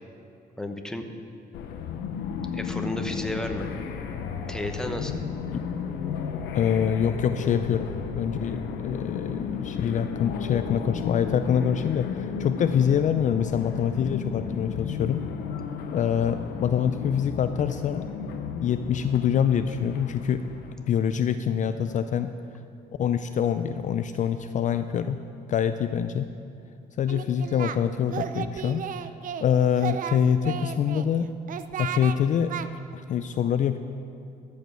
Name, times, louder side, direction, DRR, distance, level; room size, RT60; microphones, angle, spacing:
voice 1, 0.6-1.1 2.5-3.7 4.5-5.2, left 1 dB, 5° left, 5 dB, 0.9 m, -32 dB
sound 1, 1.5-20.7, left 6 dB, 90° left, 0.8 m, -34 dB
voice 2, 6.5-7.9 8.2-15.2 15.9-18.1 18.5-20.4 20.9-22.3 23.0-25.2 25.5-26.3 27.0-28.8 29.4-31.3 31.8-32.5 32.9-33.8, left 8 dB, 50° left, 9 dB, 0.4 m, -25 dB
Singing, 27.1-27.8 28.1-29.5 29.8-31.1 31.5-32.2 32.5-32.7, right 9 dB, 55° right, 0.5 m, -33 dB
13.5 x 5.3 x 6.2 m, 2.6 s
cardioid pair, 95°, 17 cm